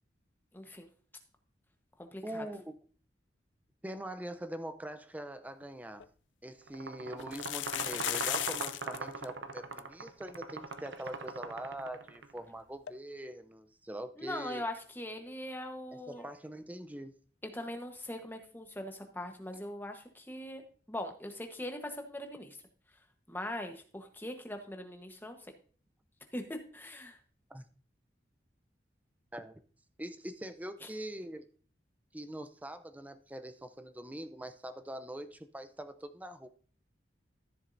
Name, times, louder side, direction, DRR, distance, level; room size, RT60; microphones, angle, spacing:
voice 1, 0.5-0.9 2.0-2.5 14.2-16.2 17.5-20.6 20.9-22.6 23.3-25.4 26.3-27.2 30.8-30.9, left 1 dB, 10° left, 5 dB, 1.1 m, -41 dB
voice 2, 2.2-2.8 3.8-6.1 6.4-14.6 15.9-17.1 27.5-27.7 29.3-29.6 30.0-31.5 32.1-36.5, right 1 dB, 10° right, 9 dB, 0.5 m, -43 dB
sound 1, 5.6-5.7 6.0-6.1 7.2-9.0 9.2-9.3 9.5-9.8 10.3-10.4 10.7-10.8 12.9-13.0, left 14 dB, 90° left, 0.4 m, -35 dB
sound 2, 6.7-12.4, right 4 dB, 90° right, 0.8 m, -41 dB
13.5 x 7.2 x 2.6 m, 0.43 s
head